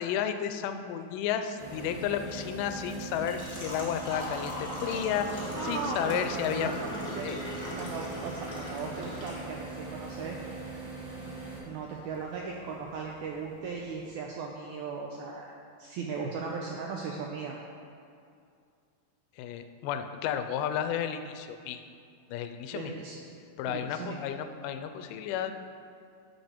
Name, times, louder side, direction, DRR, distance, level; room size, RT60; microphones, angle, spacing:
voice 1, 0.0-6.7 7.2-7.4 19.4-21.8 22.3-22.9 23.6-25.5, left 9 dB, 80° left, 8 dB, 2.0 m, -32 dB
sound 1, 1.6-11.6, right 3 dB, 70° right, 4.2 m, -41 dB
Engine / Trickle dribble / Fill (with liquid), 2.2-14.1, left 1 dB, 5° left, 1.5 m, -42 dB
voice 2, 5.5-7.3 7.8-10.4 11.2-11.3 11.6-15.5 15.8-17.6 22.7-23.2 23.6-24.2, right 4 dB, 90° right, 0 dB, 1.7 m, -37 dB
12.5 x 5.4 x 4.5 m, 2.4 s
omnidirectional pair, 4.2 m